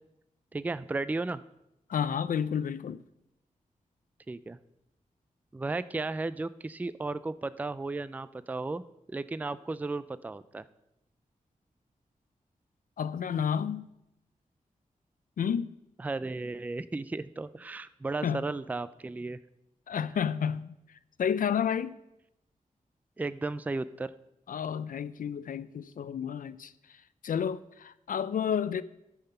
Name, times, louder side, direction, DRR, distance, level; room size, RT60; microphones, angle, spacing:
voice 1, 0.5-1.4 4.3-4.6 5.5-8.8 9.1-10.6 16.0-19.4 23.2-24.1, right 3 dB, 10° right, 0.3 m, -34 dB
voice 2, 1.9-3.0 13.0-13.9 15.4-15.7 18.2-18.4 19.9-20.7 21.2-22.0 24.5-27.0 27.2-28.8, left 8 dB, 75° left, 0.4 m, -31 dB
12.5 x 5.7 x 5.6 m
wide cardioid pair, 105°, 14 cm